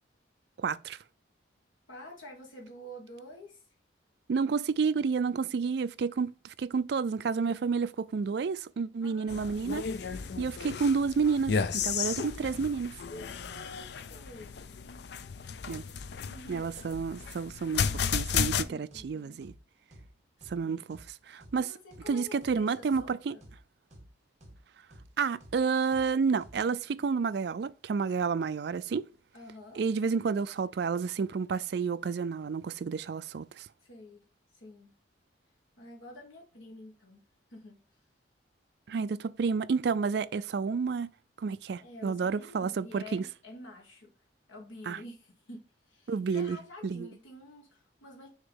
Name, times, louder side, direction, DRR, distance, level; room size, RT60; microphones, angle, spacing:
voice 1, 0.6-1.0 4.3-9.8 10.4-12.9 15.7-15.8 16.5-19.5 20.5-21.7 22.1-23.4 25.2-29.1 29.8-33.7 38.9-41.1 41.4-43.3 44.9-45.0 46.1-47.1, right 5 dB, 60° right, 0.3 m, -30 dB
voice 2, 1.9-3.6 6.1-6.2 9.0-9.6 9.9-10.6 12.2-12.5 13.1-14.6 16.2-16.7 18.5-19.4 20.4-20.8 21.6-23.4 29.3-29.8 33.8-34.3 34.5-34.9 35.8-37.2 37.5-37.8 41.8-44.1 44.5-48.3, left 1 dB, 90° left, 1.6 m, -49 dB
sound 1, 9.3-18.6, left 6 dB, 55° left, 0.4 m, -34 dB
sound 2, 18.9-19.1 19.4-19.6 19.9-20.1 20.4-20.6 20.9-21.1 21.4-21.6 21.9-22.1 22.4-22.6 22.9-23.1 23.4-23.6 23.9-24.1 24.4-24.6 24.9-25.1 25.4-25.6 25.9-26.1 26.4-26.6, equal, 35° right, 1.6 m, -52 dB
6.5 x 2.9 x 5.4 m
head